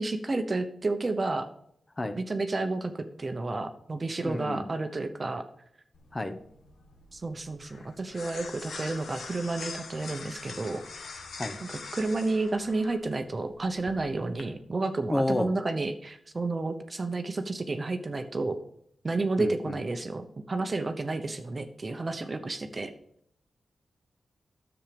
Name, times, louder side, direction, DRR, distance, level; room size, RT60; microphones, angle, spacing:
voice 1, 0.0-1.5 2.2-5.5 7.1-10.8 11.6-18.6 19.0-22.9, right 3 dB, 35° right, 7 dB, 0.9 m, -31 dB
voice 2, 4.2-4.6 6.1-6.3 11.4-11.6 15.1-15.5 19.4-19.8, left 1 dB, 20° left, 8 dB, 1.0 m, -30 dB
sound 1, 5.9-14.4, left 4 dB, 80° left, 1.5 m, -44 dB
10.5 x 7.3 x 5.2 m, 0.70 s
wide cardioid pair, 105°, 0 cm